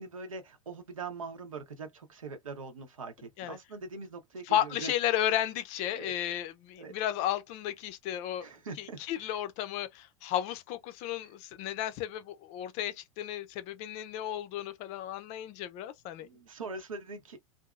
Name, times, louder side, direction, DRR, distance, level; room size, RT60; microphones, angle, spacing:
voice 1, 0.0-4.9 5.9-6.1 6.8-7.0 8.4-9.4 11.2-11.3 16.2-17.4, right 4 dB, 75° right, 0.9 m, -42 dB
voice 2, 4.5-8.4 8.8-16.3, left 11 dB, 40° left, 0.5 m, -33 dB
2.7 x 2.5 x 2.3 m
figure-of-eight pair, 85°, 18 cm